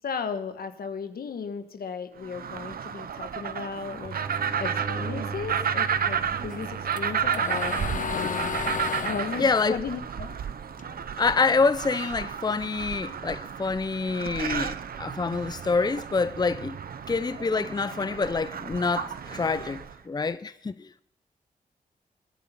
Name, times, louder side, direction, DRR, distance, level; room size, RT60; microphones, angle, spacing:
voice 1, 0.0-4.2 4.6-7.8 8.1-8.7 9.0-10.4, left 6 dB, 80° left, 1.3 m, -35 dB
sound 1, 2.2-20.0, right 8 dB, 75° right, 0.8 m, -32 dB
sound 2, 4.0-9.4, right 5 dB, 40° right, 4.1 m, -39 dB
sound 3, 6.5-11.0 11.4-13.0, left 6 dB, 60° left, 1.0 m, -34 dB
voice 2, 9.4-9.8 11.2-16.8 17.1-21.0, left 4 dB, 25° left, 0.5 m, -26 dB
21.0 x 10.0 x 5.8 m
cardioid pair, 60°, 15 cm